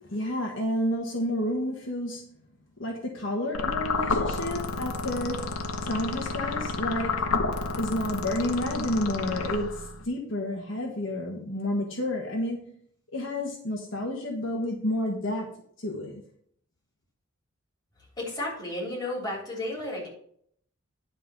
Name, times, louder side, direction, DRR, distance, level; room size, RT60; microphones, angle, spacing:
voice 1, 0.0-2.3 2.8-12.7 13.1-15.5 15.8-16.2, left 1 dB, 60° left, 1 dB, 1.4 m, -30 dB
sound 1, 3.5-10.0, left 3 dB, 90° left, 1.0 m, -30 dB
voice 2, 18.2-20.1, left 1 dB, 20° left, -3 dB, 3.4 m, -33 dB
10.5 x 3.9 x 7.0 m, 0.64 s
head